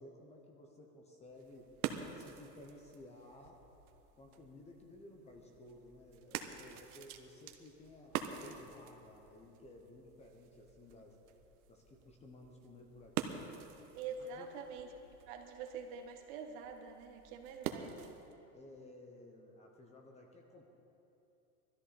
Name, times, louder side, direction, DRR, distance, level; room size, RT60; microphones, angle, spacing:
voice 1, 0.0-1.7 2.1-3.6 4.1-11.2 11.7-13.5 14.4-14.7 18.5-20.7, left 1 dB, 15° left, 2 dB, 0.9 m, -56 dB
sound 1, 1.2-18.4, right 9 dB, 80° right, 1.2 m, -47 dB
voice 2, 13.9-14.9 15.3-18.2, right 6 dB, 50° right, 4 dB, 1.5 m, -46 dB
20.5 x 13.5 x 4.3 m, 2.9 s
supercardioid pair, 160°, 43 cm